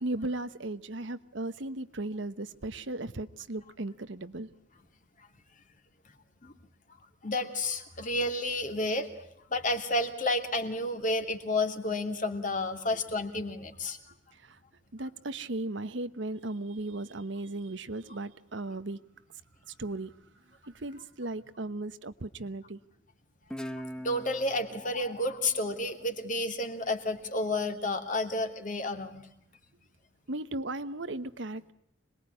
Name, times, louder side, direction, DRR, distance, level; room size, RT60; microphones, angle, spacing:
voice 1, 0.0-4.5 14.3-14.6 14.9-19.0 19.7-20.2 20.7-22.8 30.3-31.7, right 2 dB, 70° right, 1.1 m, -36 dB
voice 2, 7.2-9.1 9.5-14.0 24.0-29.2, left 2 dB, 40° left, 2.7 m, -31 dB
Guitar, 23.5-26.7, equal, 5° left, 1.1 m, -43 dB
26.5 x 21.0 x 9.8 m
head